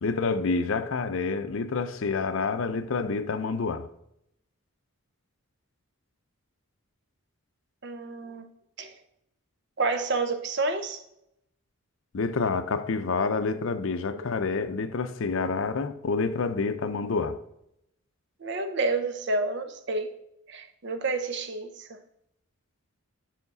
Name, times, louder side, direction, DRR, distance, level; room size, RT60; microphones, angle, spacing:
voice 1, 0.0-3.9 12.1-17.4, left 4 dB, 65° left, 0.5 m, -28 dB
voice 2, 7.8-8.5 8.8-8.9 9.8-11.0 18.4-20.1 20.5-22.0, right 3 dB, 55° right, 0.7 m, -29 dB
7.2 x 5.7 x 3.9 m
head